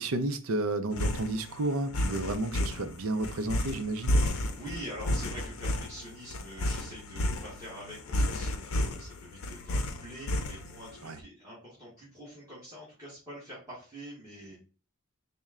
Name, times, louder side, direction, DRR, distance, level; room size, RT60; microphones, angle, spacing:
voice 1, 0.0-4.2 11.0-11.2, right 2 dB, 80° right, 0.5 m, -31 dB
sound 1, 0.9-10.9, left 1 dB, 80° left, 0.6 m, -31 dB
voice 2, 4.5-14.5, equal, 15° right, 1.3 m, -45 dB
4.2 x 2.1 x 3.6 m
head